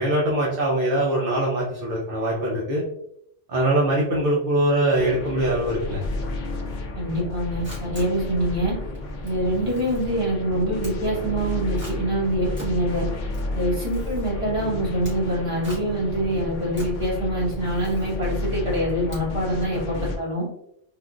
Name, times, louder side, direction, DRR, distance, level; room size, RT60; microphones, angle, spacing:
voice 1, 0.0-2.8 3.5-6.0, right 1 dB, 55° right, -4 dB, 0.8 m, -22 dB
sound 1, 4.9-20.2, left 2 dB, 60° left, 0.5 m, -31 dB
voice 2, 6.9-8.7 9.2-13.0 13.5-20.4, equal, 25° right, -7 dB, 1.5 m, -25 dB
Camera, 7.6-19.7, equal, 10° right, 1.2 m, -43 dB
3.6 x 2.5 x 2.4 m, 0.75 s
omnidirectional pair, 1.3 m